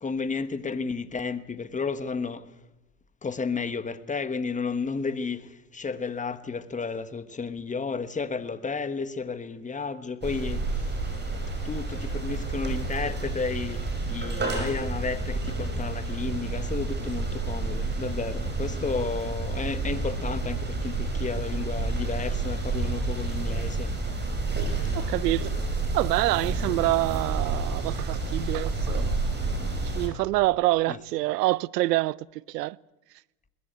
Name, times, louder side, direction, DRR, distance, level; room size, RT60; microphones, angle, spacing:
voice 1, 0.0-2.4 3.2-5.5 5.7-10.6 11.6-13.8 14.1-23.9 30.9-31.0, left 4 dB, 15° left, 1.3 m, -32 dB
sound 1, 10.2-30.1, right 3 dB, 20° right, 6.0 m, -30 dB
voice 2, 24.9-25.5 25.9-29.2 29.9-32.8, right 18 dB, 80° right, 0.7 m, -26 dB
21.5 x 19.5 x 8.2 m
hypercardioid pair, 95°, 48 cm